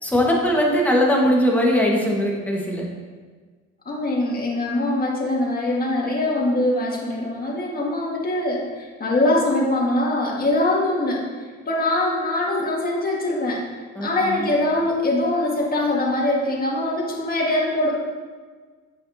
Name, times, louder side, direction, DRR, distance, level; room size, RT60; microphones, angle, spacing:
voice 1, 0.0-2.8 13.9-14.5, equal, 5° left, -2 dB, 1.5 m, -20 dB
voice 2, 3.8-11.2 11.6-13.6 14.0-17.9, left 1 dB, 30° left, -3 dB, 1.7 m, -22 dB
8.8 x 5.8 x 2.8 m, 1.5 s
cardioid pair, 90°, 30 cm